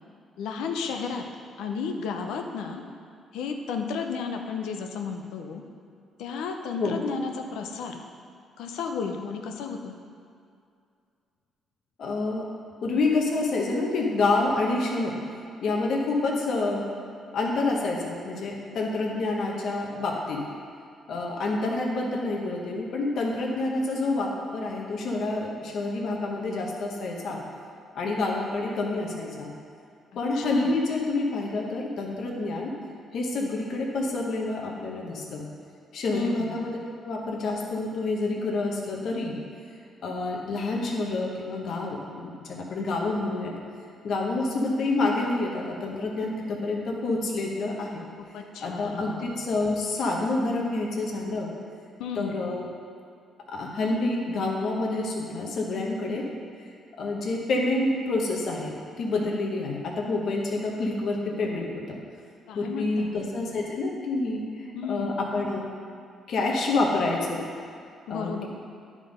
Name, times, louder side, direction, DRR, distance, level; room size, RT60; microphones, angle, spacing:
voice 1, 0.4-1.3 1.6-2.8 3.3-5.6 6.2-8.0 8.6-10.0 30.1-30.7 36.1-36.6 48.2-49.4 52.0-52.4 62.5-63.2 64.7-65.1 68.1-68.5, left 5 dB, 90° left, 4 dB, 0.6 m, -33 dB
voice 2, 12.0-12.4 12.8-15.2 15.6-16.8 17.3-20.4 21.1-27.4 27.9-29.5 30.1-32.7 33.1-35.4 35.9-36.8 37.0-39.4 40.0-43.5 44.0-48.0 48.6-51.5 52.2-52.7 53.5-56.2 57.0-62.0 62.5-65.6 66.3-67.4 68.1-68.5, left 2 dB, 65° left, -1 dB, 1.0 m, -28 dB
9.9 x 3.8 x 5.1 m, 2.4 s
cardioid pair, 90°, 0 cm